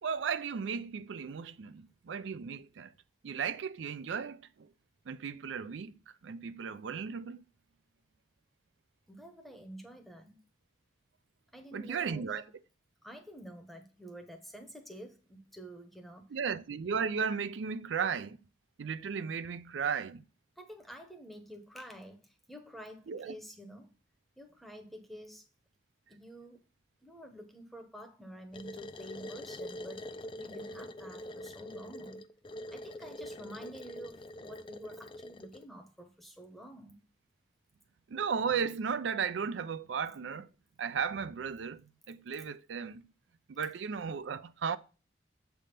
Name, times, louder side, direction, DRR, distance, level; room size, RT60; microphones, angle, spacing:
voice 1, 0.0-2.9 3.2-4.7 5.1-7.4 11.7-12.4 16.3-18.4 18.8-20.2 23.1-23.3 38.1-40.5 40.8-43.1 43.5-44.8, right 6 dB, 85° right, 0.4 m, -35 dB
voice 2, 9.1-10.4 11.5-12.5 13.0-16.3 20.6-23.9 24.4-25.5 26.1-26.6 27.0-32.2 32.7-37.0, equal, ahead, 0.8 m, -49 dB
sound 1, 28.5-35.7, left 1 dB, 25° left, 0.4 m, -44 dB
7.4 x 3.5 x 5.7 m
head